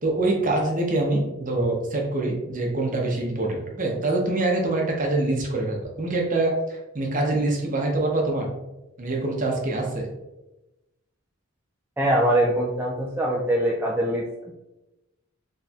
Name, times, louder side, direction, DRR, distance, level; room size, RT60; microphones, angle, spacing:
voice 1, 0.0-6.5 6.9-8.5 9.0-10.1, right 2 dB, 40° right, 0 dB, 0.8 m, -25 dB
voice 2, 12.0-14.5, right 1 dB, 10° right, -4 dB, 0.3 m, -23 dB
4.1 x 3.2 x 2.3 m, 0.98 s
head